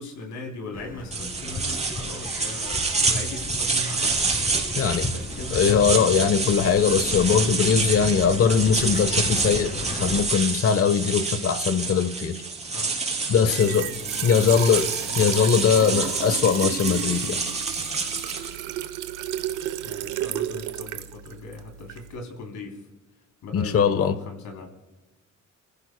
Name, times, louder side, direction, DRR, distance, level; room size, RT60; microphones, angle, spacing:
voice 1, 0.0-4.1 4.9-5.8 12.6-12.9 13.4-15.1 19.8-22.8 23.4-24.7, left 2 dB, 70° left, 3.3 m, -39 dB
sound 1, 0.7-10.2, left 2 dB, 30° left, 2.1 m, -35 dB
sound 2, 1.1-18.5, right 4 dB, 20° right, 3.4 m, -28 dB
voice 2, 4.8-5.1 5.5-9.7 10.0-12.4 13.3-13.9 14.2-14.9 15.2-17.4 23.5-24.1, left 7 dB, 50° left, 1.1 m, -21 dB
Trickle dribble / Fill (with liquid), 13.4-22.2, right 11 dB, 90° right, 0.9 m, -33 dB
29.0 x 15.5 x 2.3 m
cardioid pair, 90°, 30 cm